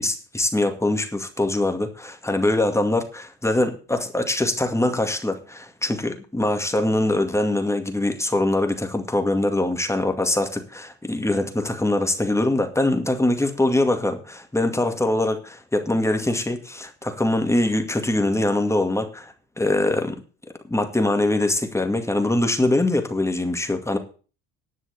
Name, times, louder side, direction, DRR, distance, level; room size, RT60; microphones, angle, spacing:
voice 1, 0.0-20.2 20.7-24.0, left 1 dB, 10° left, 6 dB, 2.1 m, -23 dB
11.0 x 6.2 x 8.3 m, 0.37 s
cardioid pair, 110°, 35 cm